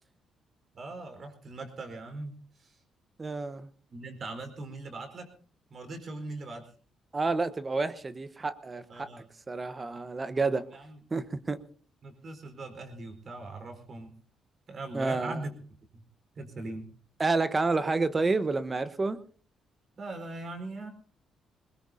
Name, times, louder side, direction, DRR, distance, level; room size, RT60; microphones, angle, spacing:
voice 1, 0.7-2.8 3.9-5.3 5.7-6.7 8.9-9.3 10.7-11.0 12.0-14.1 14.7-15.5 15.9-16.0 16.4-16.9 20.0-20.9, right 2 dB, 45° right, 6 dB, 4.5 m, -40 dB
voice 2, 3.2-3.7 7.1-9.1 9.5-10.7 11.1-11.6 14.9-15.4 17.2-19.2, right 3 dB, 30° right, 13 dB, 1.1 m, -29 dB
21.5 x 20.5 x 2.8 m, 0.42 s
cardioid pair, 90°, 0 cm